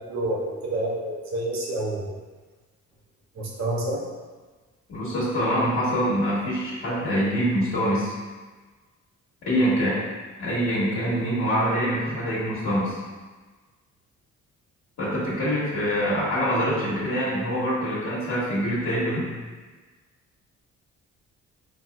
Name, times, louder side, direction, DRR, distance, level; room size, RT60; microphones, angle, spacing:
voice 1, 0.1-2.1 3.4-4.0, right 1 dB, 65° right, -2 dB, 0.8 m, -28 dB
voice 2, 4.9-8.1 9.5-10.0 10.4-13.0 15.0-19.3, equal, 60° left, -11 dB, 1.3 m, -25 dB
4.0 x 2.7 x 2.3 m, 1.3 s
cardioid pair, 90°, 30 cm